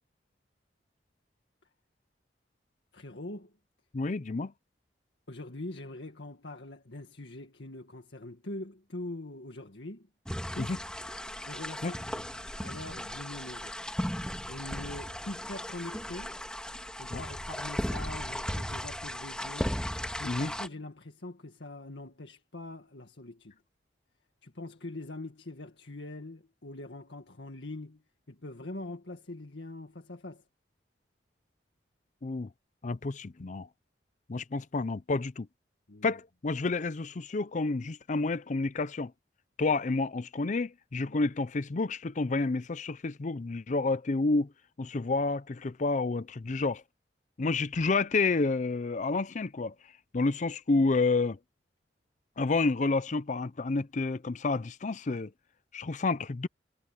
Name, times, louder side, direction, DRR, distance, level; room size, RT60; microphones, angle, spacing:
voice 1, 2.9-3.5 5.3-10.1 10.5-10.8 11.5-12.3 12.6-13.7 14.5-16.4 17.0-19.8 20.2-23.6 24.4-30.4 35.9-36.2 41.0-41.2 46.5-46.6, left 2 dB, 80° left, 1.9 m, -43 dB
voice 2, 3.9-4.5 10.7-10.8 11.8-11.9 17.1-17.2 20.3-20.5 32.2-32.5 32.8-33.7 34.3-35.5 36.0-39.1 39.6-44.5 44.8-46.8 47.4-49.7 50.1-51.4 52.4-55.3 55.7-56.5, left 3 dB, 45° left, 0.5 m, -29 dB
sound 1, 10.3-20.7, equal, 5° left, 2.1 m, -36 dB
head